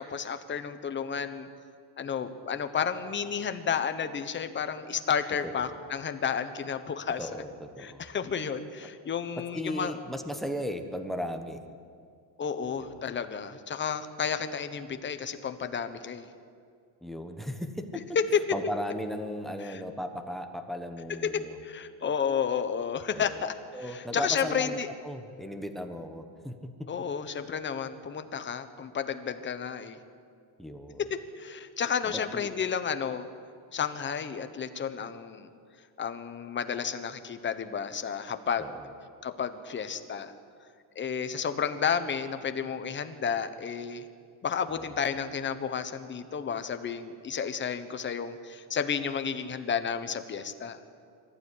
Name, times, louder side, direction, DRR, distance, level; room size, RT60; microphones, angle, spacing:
voice 1, 0.0-1.5 2.0-7.3 7.8-10.0 12.4-16.3 18.3-18.4 19.6-19.8 21.1-23.6 23.8-24.9 26.9-30.0 31.0-33.3 33.7-35.5 36.0-38.7 39.2-40.3 40.9-44.1 44.4-50.8, left 7 dB, 25° left, 9 dB, 1.1 m, -32 dB
voice 2, 7.2-8.0 9.4-11.6 12.8-13.0 17.0-18.0 18.5-21.6 23.1-23.4 23.7-27.1 30.6-31.0 32.0-32.5 38.6-38.9 44.7-44.8, equal, ahead, 7 dB, 1.1 m, -36 dB
25.0 x 15.0 x 10.0 m, 2.3 s
cardioid pair, 175°, 48 cm